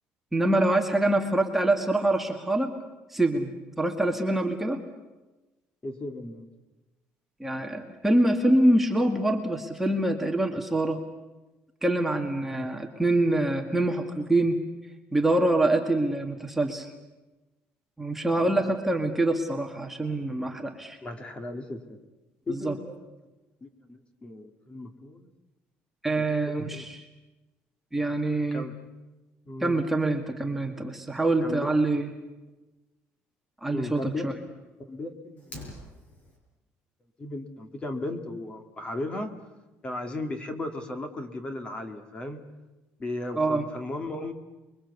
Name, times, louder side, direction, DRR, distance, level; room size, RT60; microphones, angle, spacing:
voice 1, 0.3-2.7 3.1-4.8 7.4-11.0 11.8-14.6 15.1-16.9 18.0-21.0 22.5-22.8 26.0-27.0 27.9-28.6 29.6-32.1 33.6-34.3 43.4-43.6, right 1 dB, 5° right, 3 dB, 2.0 m, -25 dB
voice 2, 5.8-6.5 12.5-12.7 18.4-18.7 21.0-22.0 22.5-23.1 23.6-25.3 26.2-26.9 28.5-28.8 29.5-29.8 31.4-31.7 33.7-34.5 34.9-35.8 37.2-39.3 39.8-42.4 43.0-44.3, left 2 dB, 20° left, 7 dB, 2.2 m, -36 dB
Fire, 35.4-36.4, left 1 dB, 35° left, 6.3 m, -44 dB
29.5 x 23.0 x 8.3 m, 1.1 s
cardioid pair, 175°, 5 cm